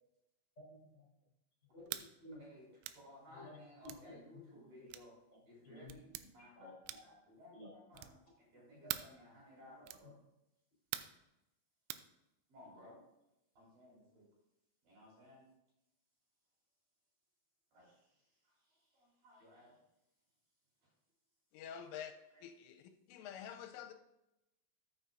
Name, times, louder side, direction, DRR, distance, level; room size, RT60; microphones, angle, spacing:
voice 1, 0.6-1.1 1.7-2.4 3.3-3.6 3.8-4.2 4.5-4.9 5.6-5.9 6.6-6.7 7.1-7.2 7.5-7.7 8.7-8.9, left 1 dB, 25° left, -5 dB, 3.9 m, -54 dB
sound 1, 1.9-2.1 2.8-3.0 3.8-4.1 4.9-5.1 5.9-6.3 6.8-7.2 7.9-8.2 8.9-9.2 9.8-10.1 10.9-11.2 11.9-12.1, right 15 dB, 85° right, 3.1 m, -44 dB
voice 2, 2.3-2.7 2.9-5.1 5.4-6.7 7.0-10.1 12.5-13.0 13.5-14.3 14.8-15.5 17.7-19.8 21.6-21.7 22.3-22.4, left 1 dB, 50° right, -5 dB, 5.0 m, -59 dB
voice 3, 21.5-22.1 22.4-22.8 23.1-23.9, left 9 dB, 85° left, 6 dB, 3.1 m, -47 dB
13.5 x 8.0 x 2.6 m, 0.90 s
omnidirectional pair, 5.7 m